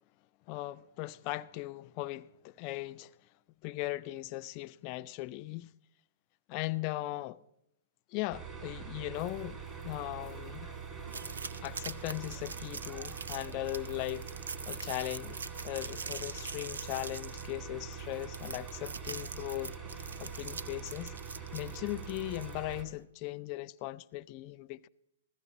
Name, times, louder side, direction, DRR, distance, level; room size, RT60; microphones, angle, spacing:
voice 1, 0.5-3.1 3.6-5.7 6.5-7.4 8.1-9.6 9.8-10.7 11.6-15.4 15.6-24.9, left 17 dB, 35° left, 0.4 m, -38 dB
sound 1, 8.3-22.8, right 6 dB, 20° right, 2.3 m, -44 dB
sound 2, 9.1-18.9, right 4 dB, 40° right, 5.8 m, -67 dB
sound 3, 11.1-22.8, right 5 dB, 85° right, 0.5 m, -44 dB
15.0 x 13.5 x 4.1 m
hypercardioid pair, 135°, 0 cm